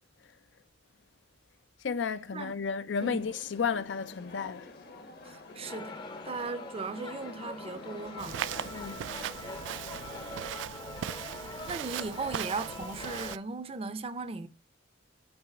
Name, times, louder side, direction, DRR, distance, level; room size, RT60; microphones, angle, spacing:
voice 1, 1.8-4.7 8.7-9.0, left 6 dB, 75° left, 0.5 m, -33 dB
sound 1, 2.9-10.3, left 2 dB, 60° left, 1.2 m, -49 dB
voice 2, 5.2-8.4 11.7-14.5, right 3 dB, 30° right, 0.5 m, -37 dB
sound 2, 5.6-13.4, left 2 dB, 25° left, 0.6 m, -43 dB
Walk footsteps, 8.2-13.4, right 10 dB, 85° right, 0.3 m, -39 dB
8.9 x 3.1 x 5.8 m
head